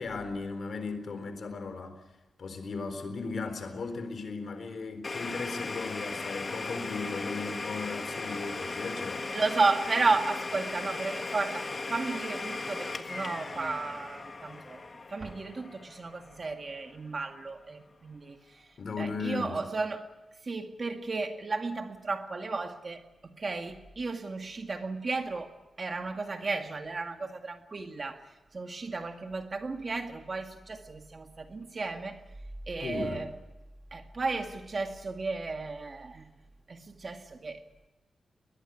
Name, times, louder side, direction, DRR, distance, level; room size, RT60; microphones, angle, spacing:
voice 1, 0.0-2.0 2.4-9.3 18.8-19.6 32.8-33.2, left 4 dB, 60° left, 3.9 m, -36 dB
Domestic sounds home sounds, 5.0-16.7, left 3 dB, 35° left, 1.6 m, -37 dB
voice 2, 9.3-14.8 15.1-18.6 19.0-20.1 20.4-28.2 28.5-32.2 32.7-33.3 33.9-36.3 36.7-37.6, right 3 dB, 40° right, 2.0 m, -33 dB
21.0 x 21.0 x 9.2 m
wide cardioid pair, 115°, 0 cm